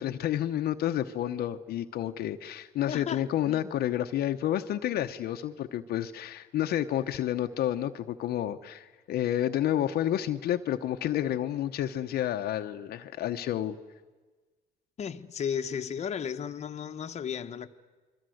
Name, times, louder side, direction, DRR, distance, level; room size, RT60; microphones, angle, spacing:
voice 1, 0.0-13.8, left 11 dB, 65° left, 1.0 m, -30 dB
voice 2, 2.9-3.6 15.0-17.7, left 7 dB, 40° left, 1.1 m, -34 dB
29.5 x 23.0 x 7.9 m
cardioid pair, 110°, 17 cm